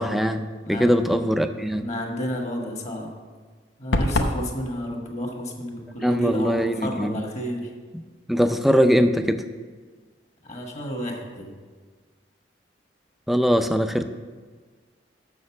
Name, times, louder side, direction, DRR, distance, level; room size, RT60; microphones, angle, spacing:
voice 1, 0.0-1.9 6.0-7.2 8.3-9.4 13.3-14.0, equal, ahead, 8 dB, 0.4 m, -21 dB
voice 2, 0.6-1.2 1.8-3.1 3.8-7.7 10.4-11.5, equal, 40° left, 2 dB, 1.3 m, -31 dB
sound 1, 3.9-4.4, left 2 dB, 70° left, 0.7 m, -22 dB
6.4 x 6.4 x 7.0 m, 1.5 s
head